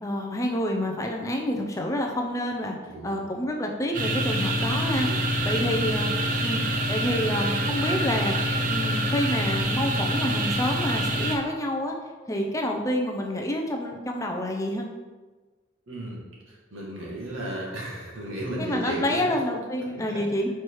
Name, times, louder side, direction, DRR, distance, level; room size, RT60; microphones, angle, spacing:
voice 1, 0.0-2.7 3.0-5.1 5.4-6.1 6.4-6.6 6.9-8.4 8.7-12.0 12.3-14.9 18.6-20.5, left 1 dB, 15° left, 1 dB, 0.5 m, -28 dB
voice 2, 2.8-3.2 5.0-5.8 15.9-16.2 16.5-19.2 19.9-20.2, right 1 dB, 80° right, -3 dB, 1.7 m, -35 dB
sound 1, 3.9-11.4, right 1 dB, 40° right, 0.6 m, -26 dB
4.7 x 4.6 x 4.6 m, 1.3 s
head